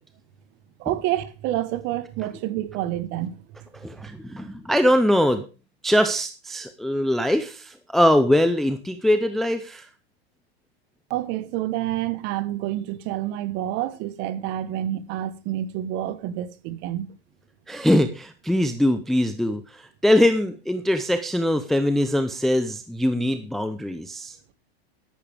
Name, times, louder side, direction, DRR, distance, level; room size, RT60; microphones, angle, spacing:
voice 1, 0.8-3.4 11.1-17.1, right 13 dB, 35° right, 1.2 m, -28 dB
voice 2, 3.8-5.4 5.8-9.9 17.7-24.4, left 1 dB, ahead, 0.5 m, -22 dB
13.0 x 11.0 x 3.4 m
supercardioid pair, 155°, 32 cm